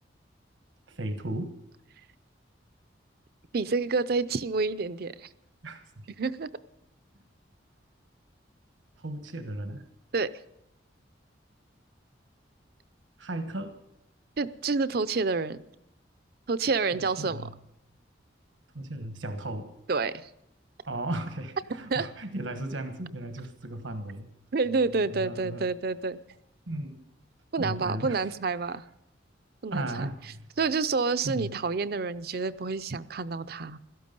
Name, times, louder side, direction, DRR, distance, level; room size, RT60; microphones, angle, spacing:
voice 1, 0.9-1.5 5.6-6.1 9.0-9.8 13.2-13.7 16.9-17.5 18.7-19.7 20.9-24.3 25.1-25.7 26.7-27.0 27.6-28.3 29.7-30.5 31.2-31.5, right 1 dB, 85° right, 7 dB, 1.3 m, -35 dB
voice 2, 3.5-5.3 6.2-6.5 10.1-10.3 14.4-15.6 16.5-17.4 19.9-20.3 21.9-22.1 24.5-26.2 27.5-28.8 29.6-30.1 30.6-33.8, right 4 dB, 55° right, 14 dB, 0.5 m, -28 dB
16.5 x 12.5 x 5.4 m, 0.82 s
head